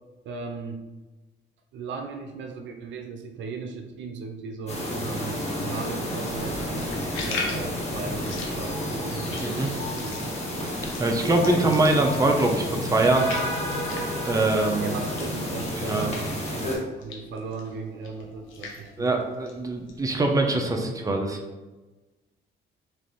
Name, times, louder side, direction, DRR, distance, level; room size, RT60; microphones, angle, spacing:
voice 1, 0.2-0.9 1.7-10.4 11.4-11.8 14.8-19.2, right 4 dB, 70° right, 4 dB, 0.5 m, -37 dB
sound 1, 4.7-16.8, left 1 dB, 35° left, 1.3 m, -31 dB
sound 2, 6.2-16.5 16.7-20.7, left 3 dB, 85° left, 0.8 m, -40 dB
voice 2, 11.0-13.3 14.2-14.9 15.8-16.1 19.0-21.4, right 2 dB, 15° right, 2 dB, 0.6 m, -23 dB
3.2 x 2.6 x 3.9 m, 1.1 s
cardioid pair, 90°, 20 cm